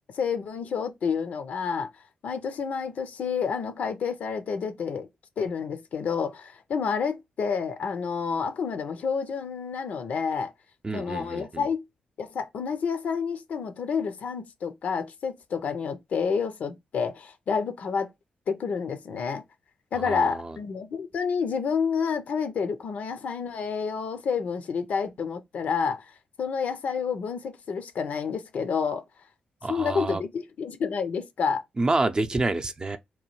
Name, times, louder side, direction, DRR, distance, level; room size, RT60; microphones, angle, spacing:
voice 1, 0.1-1.9 2.2-5.1 5.4-10.5 10.9-11.8 12.2-18.1 18.5-19.4 19.9-26.1 26.4-29.0 29.7-31.6, left 6 dB, 70° left, 0.6 m, -29 dB
voice 2, 10.8-11.7 19.9-20.6 29.6-30.2 31.8-33.0, right 2 dB, 30° right, 0.6 m, -28 dB
3.0 x 2.2 x 3.0 m
supercardioid pair, 50°, 3 cm